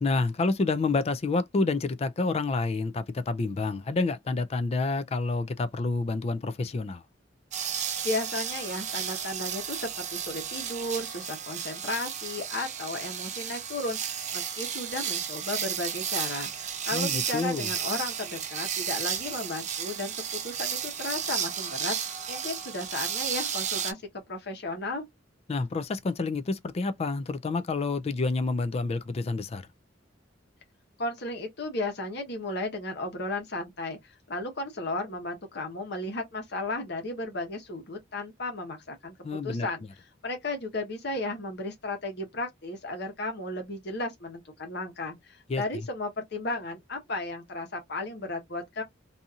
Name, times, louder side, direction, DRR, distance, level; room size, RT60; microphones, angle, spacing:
voice 1, 0.0-7.0 16.9-17.7 25.5-29.6 39.2-39.7 45.5-45.6, left 3 dB, 35° left, 0.3 m, -28 dB
sound 1, 7.5-23.9, right 8 dB, 40° right, 0.5 m, -33 dB
voice 2, 8.0-20.1 20.4-24.0 24.3-25.0 31.0-39.1 39.4-39.8 40.2-48.8, left 2 dB, 60° left, 1.1 m, -34 dB
2.7 x 2.7 x 2.3 m
head